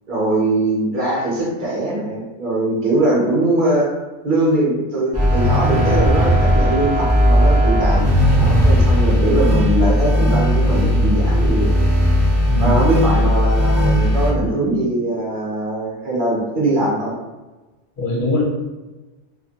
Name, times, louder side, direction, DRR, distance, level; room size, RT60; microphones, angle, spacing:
voice 1, 0.1-3.9 4.2-11.8 12.6-17.2, right 1 dB, 50° right, -5 dB, 0.9 m, -21 dB
sound 1, 5.1-14.3, equal, 20° right, 0.4 m, -16 dB
voice 2, 12.5-12.8 18.0-18.4, left 2 dB, 50° left, -4 dB, 1.0 m, -21 dB
2.7 x 2.4 x 2.4 m, 1.2 s
omnidirectional pair, 1.2 m